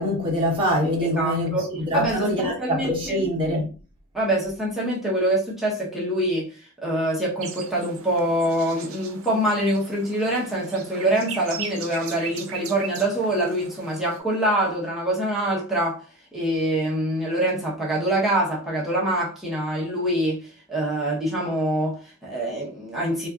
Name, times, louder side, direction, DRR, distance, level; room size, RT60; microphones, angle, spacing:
voice 1, 0.0-3.7, equal, 25° right, 1.1 m, -24 dB
voice 2, 1.0-1.7 1.9-3.2 4.1-6.5 6.8-16.0 16.3-20.4 20.7-23.3, right 1 dB, ahead, 0.9 m, -25 dB
sound 1, 7.4-14.2, right 6 dB, 70° right, 0.5 m, -39 dB
4.0 x 2.6 x 2.4 m
head